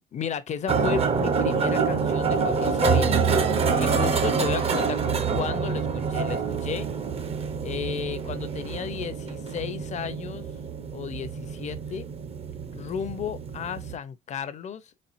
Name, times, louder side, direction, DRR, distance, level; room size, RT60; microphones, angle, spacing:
voice 1, 0.1-3.2 3.8-5.0 5.3-6.9 7.6-10.4 10.9-12.1 12.7-14.9, left 8 dB, 45° left, 0.7 m, -33 dB
sound 1, 0.7-13.9, right 5 dB, 35° right, 0.7 m, -26 dB
4.3 x 3.7 x 2.5 m
cardioid pair, 110°, 17 cm